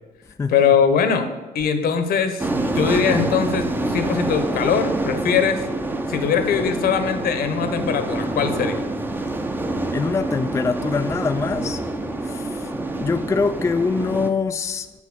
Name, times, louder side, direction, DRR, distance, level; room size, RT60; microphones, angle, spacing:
voice 1, 0.5-1.3 1.5-5.6 6.1-8.8, left 7 dB, 65° left, 10 dB, 1.1 m, -21 dB
sound 1, 2.4-14.3, right 2 dB, 10° right, 0.7 m, -26 dB
voice 2, 9.9-11.8 12.2-14.9, left 4 dB, 15° left, 8 dB, 0.4 m, -24 dB
7.4 x 7.0 x 6.3 m, 1.3 s
cardioid pair, 110°, 17 cm